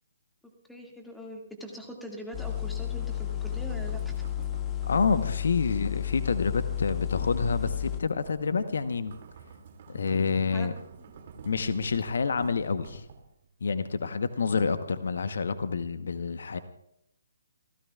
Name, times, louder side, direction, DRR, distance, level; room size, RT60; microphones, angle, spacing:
voice 1, 0.7-4.1 10.5-10.7, equal, ahead, 1 dB, 2.1 m, -42 dB
sound 1, 2.3-8.0, left 12 dB, 15° left, 0.6 m, -32 dB
sound 2, 2.5-13.5, right 6 dB, 45° right, 2.4 m, -49 dB
voice 2, 4.9-9.1 9.9-10.7 11.4-13.1 13.6-16.6, left 5 dB, 60° left, 11 dB, 1.0 m, -28 dB
28.5 x 16.0 x 2.4 m, 0.78 s
figure-of-eight pair, 135°, 0 cm